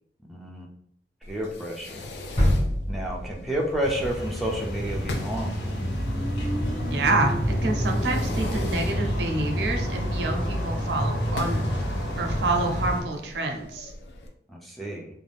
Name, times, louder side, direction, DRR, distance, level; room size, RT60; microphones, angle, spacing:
voice 1, 0.3-0.7 1.3-1.9 2.9-5.8 14.5-15.1, right 1 dB, ahead, -3 dB, 0.3 m, -30 dB
Fireworks, 1.2-14.3, left 2 dB, 65° left, 0.4 m, -41 dB
sound 1, 2.4-4.3 4.7-4.8, left 1 dB, 35° left, 1.2 m, -26 dB
sound 2, 3.8-13.0, equal, 85° left, 0.8 m, -28 dB
voice 2, 6.9-11.6 12.2-13.9, right 2 dB, 75° right, 3 dB, 0.5 m, -27 dB
2.5 x 2.2 x 3.3 m, 0.68 s
head